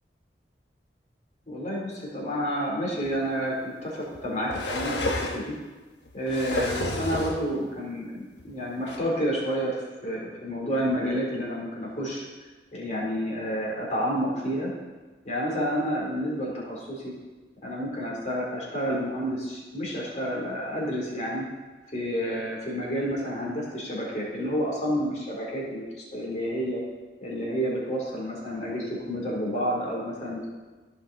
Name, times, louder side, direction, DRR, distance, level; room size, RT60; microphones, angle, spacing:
voice 1, 1.5-5.5 6.1-12.2 12.7-14.7 15.2-17.1 17.6-21.4 21.9-25.8 26.1-26.8 27.2-30.5, equal, 40° left, -4 dB, 2.9 m, -30 dB
sound 1, 3.0-3.1 4.1-5.5 6.1-7.4 8.4-8.5 8.9-9.0, left 2 dB, 85° left, 1.2 m, -30 dB
15.0 x 5.5 x 3.8 m, 1.3 s
head